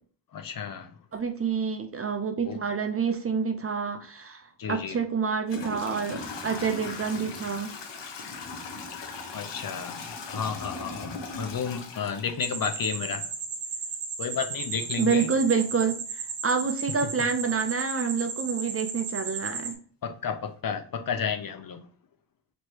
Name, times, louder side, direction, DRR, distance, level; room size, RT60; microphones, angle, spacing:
voice 1, 0.3-0.9 2.5-2.6 4.6-5.0 9.3-10.1 10.3-13.2 14.2-15.3 20.0-21.9, left 6 dB, 50° left, 0.6 m, -32 dB
voice 2, 1.1-7.7 15.0-19.8, right 5 dB, 30° right, 0.6 m, -28 dB
Toilet flush / Trickle dribble, 4.6-4.7 5.4-13.2, left 4 dB, 65° left, 1.0 m, -38 dB
sound 1, 12.4-19.7, right 6 dB, 70° right, 1.2 m, -35 dB
3.1 x 3.1 x 4.5 m
cardioid pair, 90°, 45 cm